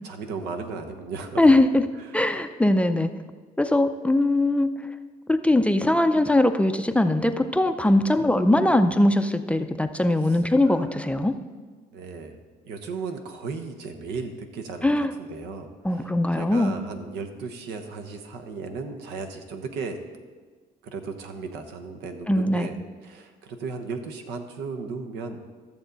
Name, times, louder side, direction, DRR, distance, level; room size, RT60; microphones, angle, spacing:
voice 1, 0.0-1.4 2.0-2.2 7.8-8.3 10.2-10.9 11.9-12.4 12.6-20.0 20.9-22.7 23.0-25.4, right 4 dB, 85° right, 5 dB, 1.1 m, -36 dB
voice 2, 1.4-1.8 2.1-3.1 3.6-4.7 5.3-11.3 14.8-15.1 15.8-16.7 22.3-22.7, left 1 dB, 5° left, 8 dB, 0.4 m, -21 dB
13.5 x 7.0 x 4.0 m, 1.5 s
cardioid pair, 110°, 17 cm